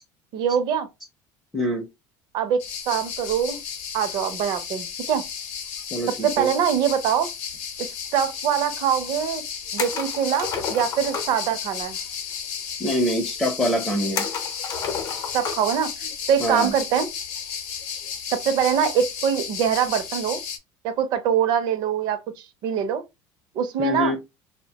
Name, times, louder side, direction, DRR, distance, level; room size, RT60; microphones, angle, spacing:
voice 1, 0.3-0.9 2.3-3.6 3.9-5.2 6.2-7.3 8.1-9.4 9.7-12.0 15.3-17.1 18.3-20.4 20.8-23.0 23.6-24.1, right 8 dB, 55° right, 0.5 m, -23 dB
voice 2, 1.5-1.8 5.9-6.5 12.8-14.2 16.4-16.7 23.8-24.2, equal, 5° left, 0.5 m, -25 dB
sound 1, 2.6-20.6, left 7 dB, 85° left, 0.7 m, -33 dB
sound 2, 9.8-11.4 14.1-15.8 16.1-16.2 17.8-18.1, left 6 dB, 45° left, 0.6 m, -31 dB
2.7 x 2.1 x 2.8 m
cardioid pair, 150°, 9 cm